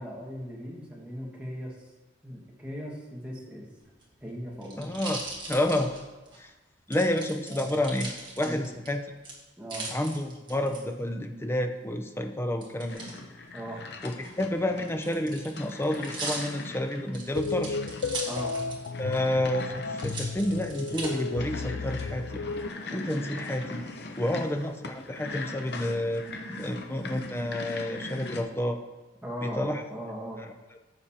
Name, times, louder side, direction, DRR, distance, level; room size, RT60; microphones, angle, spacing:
voice 1, 0.0-1.9 2.2-3.7 4.2-4.9 7.5-7.8 8.4-8.6 9.6-9.9 13.5-13.8 18.3-18.5 24.3-24.4 29.2-30.4, equal, 5° right, -4 dB, 1.7 m, -38 dB
sound 1, 3.9-6.4 6.9-8.9 9.2-10.8 12.6-13.1 14.1-19.0 19.3-19.4 20.0-21.1 21.7-22.3, right 3 dB, 25° right, 1.7 m, -39 dB
voice 2, 4.8-5.2 5.5-6.0 6.4-6.5 6.9-8.1 8.4-9.0 9.9-13.0 14.0-17.8 19.0-22.4 22.9-23.8 24.2-28.8 29.4-29.8, left 1 dB, 10° left, 5 dB, 0.5 m, -30 dB
sound 2, 12.9-28.4, left 3 dB, 55° left, 0.8 m, -41 dB
sound 3, 17.3-22.7, left 4 dB, 75° left, 0.3 m, -34 dB
14.5 x 6.5 x 2.9 m, 1.2 s
head